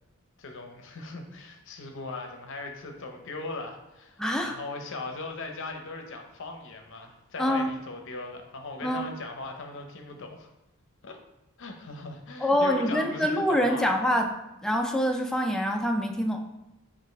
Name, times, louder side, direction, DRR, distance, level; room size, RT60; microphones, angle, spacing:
voice 1, 0.4-10.5 11.0-11.2 11.6-13.9, left 3 dB, 60° left, 4 dB, 0.6 m, -39 dB
voice 2, 4.2-4.6 7.4-7.7 8.8-9.1 12.4-16.6, equal, 5° left, 3 dB, 0.3 m, -26 dB
5.6 x 2.5 x 3.1 m, 0.96 s
head